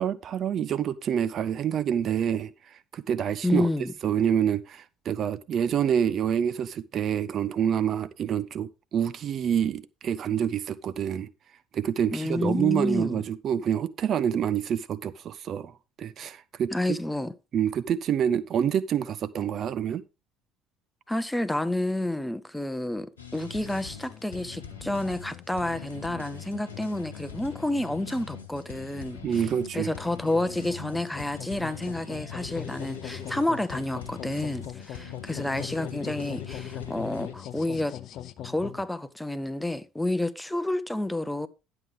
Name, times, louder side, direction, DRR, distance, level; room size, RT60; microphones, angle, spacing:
voice 1, 0.0-3.7 4.0-11.3 11.7-17.0 17.5-20.0 29.2-30.0, right 9 dB, 45° right, 0.5 m, -27 dB
voice 2, 3.4-3.9 12.1-13.2 16.7-17.3 21.1-29.5 29.7-38.0 38.4-41.5, left 1 dB, 5° left, 0.8 m, -30 dB
sound 1, 23.2-37.3, left 6 dB, 80° left, 1.0 m, -43 dB
sound 2, 23.6-38.8, left 11 dB, 50° left, 0.6 m, -42 dB
11.0 x 7.9 x 3.6 m
figure-of-eight pair, 60°, 0 cm